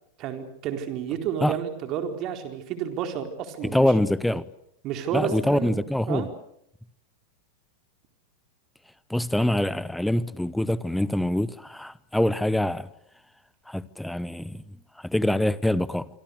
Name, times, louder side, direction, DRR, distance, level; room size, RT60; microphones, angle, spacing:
voice 1, 0.2-3.9 4.8-6.3, right 8 dB, 35° right, 4.2 m, -31 dB
voice 2, 3.6-4.4 5.1-6.3 9.1-12.9 13.7-16.1, left 1 dB, 5° left, 0.9 m, -25 dB
27.0 x 25.0 x 6.7 m
figure-of-eight pair, 90°, 0 cm